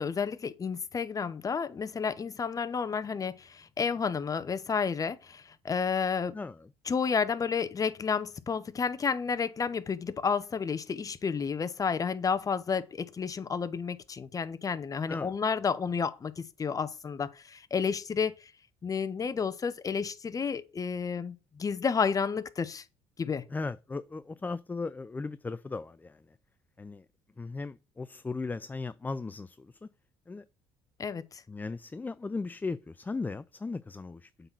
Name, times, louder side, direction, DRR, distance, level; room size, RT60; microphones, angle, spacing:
voice 1, 0.0-6.3 6.9-18.5 18.8-22.8 23.2-23.4 31.0-31.4, left 6 dB, 30° left, 0.8 m, -31 dB
voice 2, 6.3-6.7 15.1-15.3 23.5-26.4 26.8-27.1 27.4-29.9 30.3-30.4 31.5-34.5, left 3 dB, 15° left, 0.4 m, -37 dB
7.8 x 4.0 x 6.1 m
supercardioid pair, 75°, 11 cm